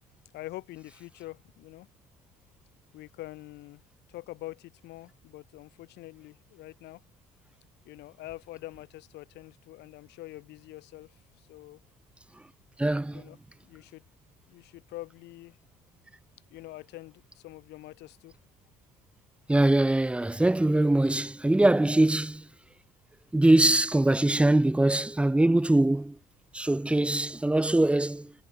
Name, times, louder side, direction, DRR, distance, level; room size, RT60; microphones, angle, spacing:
voice 1, 0.3-1.9 2.9-3.8 4.1-7.0 7.8-11.8 13.1-13.4 13.6-14.0 14.5-15.6 16.5-18.4, left 17 dB, 80° left, 7.8 m, -45 dB
voice 2, 12.8-13.2 19.5-22.4 23.3-26.1 26.5-28.3, right 1 dB, 5° right, 0.9 m, -22 dB
cardioid pair, 110°, 17 cm